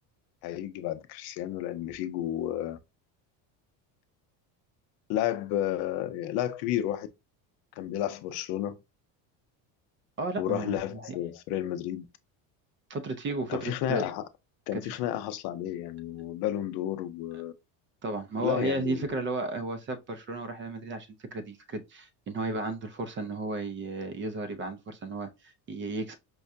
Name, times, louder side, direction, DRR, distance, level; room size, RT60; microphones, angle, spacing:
voice 1, 0.4-2.8 5.1-7.1 7.8-8.8 10.4-12.0 13.5-14.2 14.7-17.5 18.4-19.1, left 12 dB, 70° left, 0.6 m, -31 dB
voice 2, 10.2-11.1 12.9-14.0 14.7-14.8 18.0-26.2, right 3 dB, 30° right, 0.4 m, -34 dB
4.7 x 2.2 x 2.6 m
cardioid pair, 130°, 41 cm